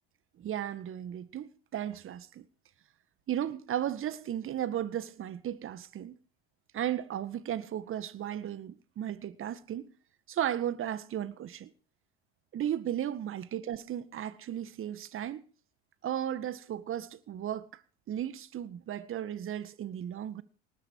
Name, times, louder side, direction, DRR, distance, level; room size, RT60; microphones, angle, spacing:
voice 1, 0.4-2.5 3.3-6.2 6.7-9.9 10.3-11.7 12.5-15.4 16.0-17.7 18.1-20.4, right 10 dB, 40° right, 1.7 m, -35 dB
19.0 x 12.0 x 4.8 m
hypercardioid pair, 80°, 32 cm